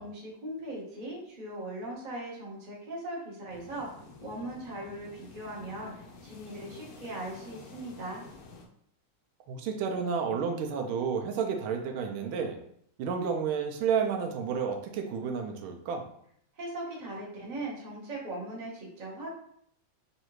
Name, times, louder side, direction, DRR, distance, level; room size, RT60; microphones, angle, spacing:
voice 1, 0.0-3.9 4.2-5.9 6.2-8.2 16.6-19.3, right 1 dB, 35° right, -4 dB, 0.8 m, -39 dB
sound 1, 3.5-8.7, left 3 dB, 80° left, 0.8 m, -50 dB
voice 2, 9.5-12.6 13.0-16.0, right 6 dB, 80° right, 4 dB, 1.4 m, -31 dB
3.7 x 3.2 x 3.0 m, 0.68 s
omnidirectional pair, 2.3 m